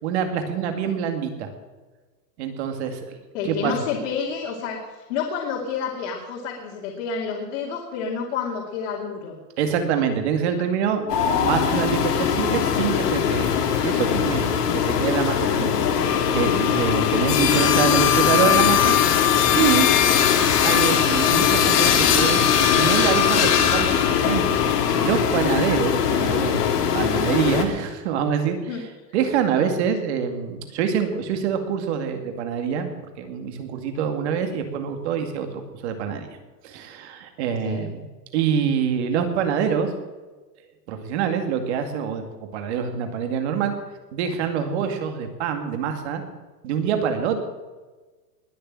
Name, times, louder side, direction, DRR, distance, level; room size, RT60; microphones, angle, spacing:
voice 1, 0.0-1.5 2.4-3.2 3.4-3.7 9.6-13.5 13.8-15.7 16.0-19.0 19.5-19.9 20.6-26.7 26.9-28.7 29.1-36.3 36.6-38.0 38.3-39.9 40.9-43.7 44.1-46.2 46.6-47.4, right 7 dB, 40° right, 6 dB, 2.3 m, -25 dB
voice 2, 3.3-9.4 28.7-28.8 37.6-37.9, left 6 dB, 45° left, -2 dB, 2.7 m, -29 dB
sound 1, 11.1-27.7, left 8 dB, 70° left, 2.9 m, -20 dB
20.5 x 6.9 x 8.7 m, 1.3 s
supercardioid pair, 170°, 49 cm